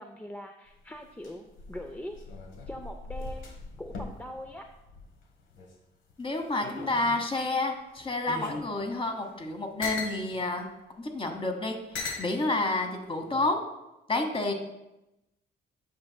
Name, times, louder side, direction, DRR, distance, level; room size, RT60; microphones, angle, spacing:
voice 1, 0.0-2.2 2.7-4.6, left 1 dB, 10° left, 4 dB, 0.4 m, -42 dB
sound 1, 0.7-5.7 6.1-7.3 8.0-10.2 11.1-11.2 11.9-12.3 13.2-13.5, left 3 dB, 80° left, 1.2 m, -40 dB
voice 2, 6.2-10.7 11.0-11.8 12.2-13.6 14.1-14.5, left 2 dB, 25° left, 4 dB, 1.1 m, -29 dB
8.5 x 6.0 x 2.2 m, 0.95 s
cardioid pair, 90°, 20 cm